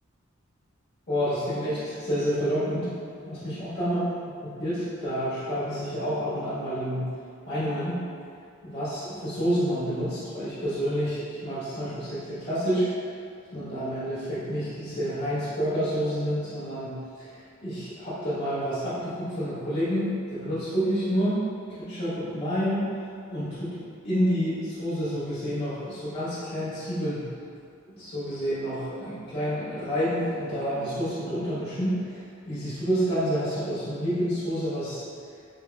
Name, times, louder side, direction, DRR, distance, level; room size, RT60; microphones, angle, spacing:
voice 1, 1.1-2.9 3.2-4.0 4.4-7.1 7.5-8.0 8.6-12.9 13.5-17.3 17.6-21.4 21.7-22.8 23.3-23.7 24.0-27.3 28.0-32.1 32.5-35.0, equal, 55° left, -12 dB, 1.4 m, -28 dB
6.2 x 2.1 x 2.3 m, 2.3 s
head